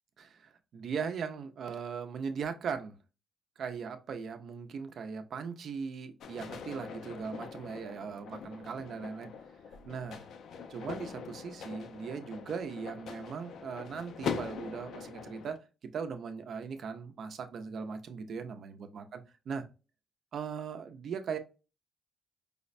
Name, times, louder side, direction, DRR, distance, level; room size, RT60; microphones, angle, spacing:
voice 1, 0.2-2.9 3.6-9.3 9.9-10.3 10.7-15.6 15.9-19.6 20.3-21.4, right 6 dB, 60° right, 0.6 m, -39 dB
sound 1, 6.2-15.6, left 6 dB, 70° left, 0.5 m, -42 dB
4.8 x 2.1 x 2.5 m
cardioid pair, 90°, 0 cm